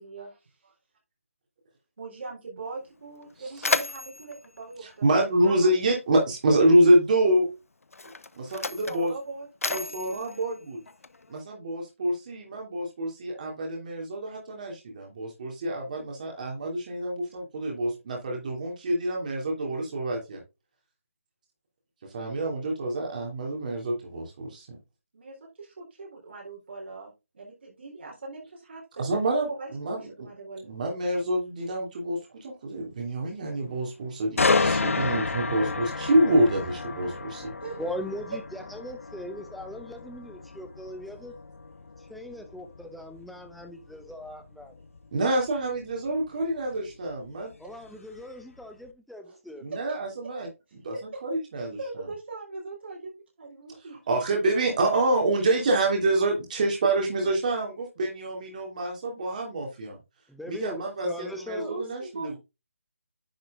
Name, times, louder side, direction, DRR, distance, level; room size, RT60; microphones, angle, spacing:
voice 1, 0.0-0.7 2.0-5.0 5.5-5.7 8.5-10.0 25.1-30.7 37.6-38.0 46.7-46.8 49.2-49.4 49.7-49.8 50.7-51.2 51.8-54.0 61.5-62.4, right 3 dB, 50° right, -2 dB, 3.9 m, -41 dB
Mechanisms, 2.7-2.8 3.1-5.8 6.8-7.0 7.8-11.4, left 3 dB, 90° left, 0.9 m, -34 dB
voice 2, 4.8-7.4 8.3-9.1 9.7-10.8 11.3-20.4 22.1-24.8 29.0-30.3 30.6-37.5 45.1-47.5 49.6-51.8 54.1-60.0 60.5-62.4, right 1 dB, 35° right, 0 dB, 2.8 m, -26 dB
sound 1, 34.4-48.2 48.6-48.9, left 3 dB, 70° left, 1.0 m, -31 dB
voice 3, 37.8-41.3 42.0-44.7 47.6-49.6 60.3-61.8, left 1 dB, ahead, 5 dB, 0.6 m, -40 dB
10.5 x 4.8 x 3.7 m, 0.25 s
figure-of-eight pair, 165°, 7 cm